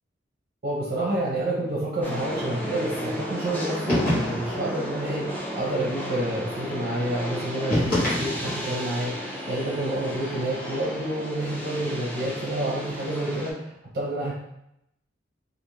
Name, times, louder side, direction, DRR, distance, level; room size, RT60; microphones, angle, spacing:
voice 1, 0.6-14.3, right 1 dB, 50° right, -6 dB, 0.6 m, -29 dB
sound 1, 2.0-13.5, equal, 10° left, 0.4 m, -33 dB
sound 2, 3.9-4.6 7.7-8.7, left 1 dB, 50° left, 1.1 m, -25 dB
2.4 x 2.4 x 3.2 m, 0.82 s
head